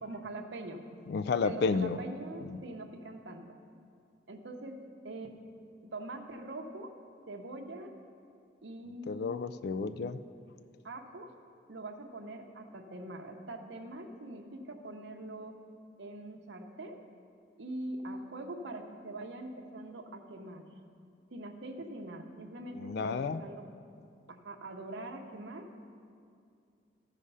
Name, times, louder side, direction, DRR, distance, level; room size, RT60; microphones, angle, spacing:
voice 1, 0.0-0.8 1.3-3.5 4.3-5.4 5.9-6.9 7.3-7.9 8.6-9.4 10.8-11.3 11.7-15.5 16.0-17.0 17.6-20.6 21.3-23.7 24.3-25.7, right 2 dB, 65° right, 4 dB, 0.8 m, -43 dB
voice 2, 1.1-2.0 2.5-2.6 9.1-10.2 22.7-23.4, left 4 dB, 55° left, 12 dB, 0.3 m, -31 dB
14.0 x 5.0 x 5.5 m, 2.4 s
head